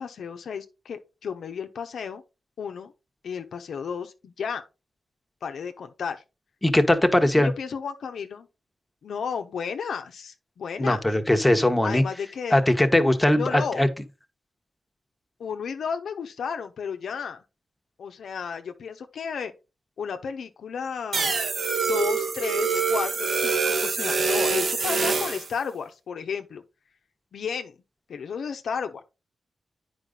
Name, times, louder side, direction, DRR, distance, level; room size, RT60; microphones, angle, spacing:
voice 1, 0.0-2.2 2.6-2.9 3.2-4.6 5.4-6.2 7.4-8.5 9.0-11.0 11.8-12.6 13.4-13.8 15.4-17.4 18.0-19.5 20.0-21.3 21.8-26.6 27.3-27.7 28.1-29.0, left 6 dB, 85° left, 0.9 m, -33 dB
voice 2, 6.6-7.5 10.8-12.0 12.5-13.9, left 1 dB, 10° left, 1.3 m, -20 dB
sound 1, 21.1-25.5, right 4 dB, 65° right, 1.6 m, -25 dB
9.1 x 5.2 x 3.9 m
cardioid pair, 75°, 0 cm